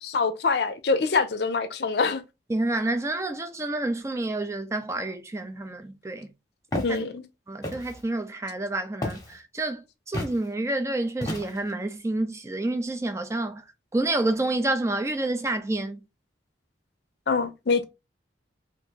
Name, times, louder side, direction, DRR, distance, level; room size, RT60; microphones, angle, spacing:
voice 1, 0.0-2.2 6.8-7.2 17.3-17.8, left 4 dB, 65° left, 0.5 m, -25 dB
voice 2, 2.5-6.3 7.5-13.6 13.9-16.0, right 2 dB, 15° right, 0.4 m, -28 dB
Walk footsteps, 6.7-7.0 7.6-8.0 9.0-9.3 10.1-10.4 11.2-11.7, left 1 dB, 20° left, 0.9 m, -31 dB
2.9 x 2.5 x 3.6 m
head